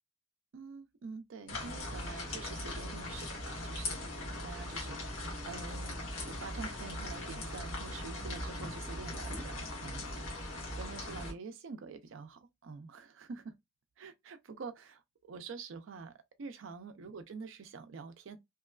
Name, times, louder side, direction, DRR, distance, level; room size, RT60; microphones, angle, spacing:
voice 1, 0.5-4.1 4.4-10.4 10.8-13.5 14.0-16.1 16.4-18.4, right 4 dB, 70° right, 0.4 m, -47 dB
sound 1, 1.5-11.3, left 1 dB, 75° left, 1.2 m, -40 dB
2.9 x 2.3 x 2.3 m
head